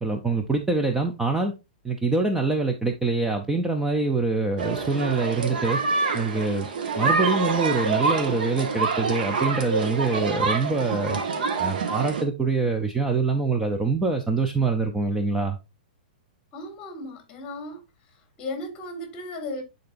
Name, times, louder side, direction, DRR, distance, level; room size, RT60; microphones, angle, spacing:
voice 1, 0.0-1.5 1.8-5.8 6.1-6.7 7.0-11.2 11.6-15.6, right 3 dB, 5° right, 0.5 m, -25 dB
sound 1, 4.6-12.2, right 4 dB, 75° right, 1.4 m, -26 dB
voice 2, 16.5-17.8 18.4-19.6, left 2 dB, 25° left, 1.9 m, -35 dB
10.0 x 3.9 x 2.5 m
hypercardioid pair, 155°, 5 cm